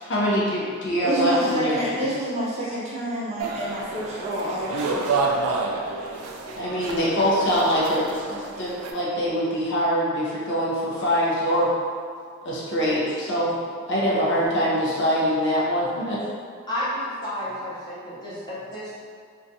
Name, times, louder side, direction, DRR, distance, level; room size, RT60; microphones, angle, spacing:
voice 1, 0.0-1.8 6.6-11.7 12.4-13.6 13.9-16.2, equal, 55° left, -6 dB, 0.6 m, -23 dB
voice 2, 1.0-5.2 18.0-18.1, equal, 30° right, -7 dB, 0.5 m, -28 dB
sound 1, 3.4-8.9, right 3 dB, 90° right, 0.3 m, -29 dB
voice 3, 16.7-18.9, left 1 dB, 20° left, -10 dB, 0.7 m, -31 dB
2.6 x 2.2 x 2.6 m, 2.1 s
head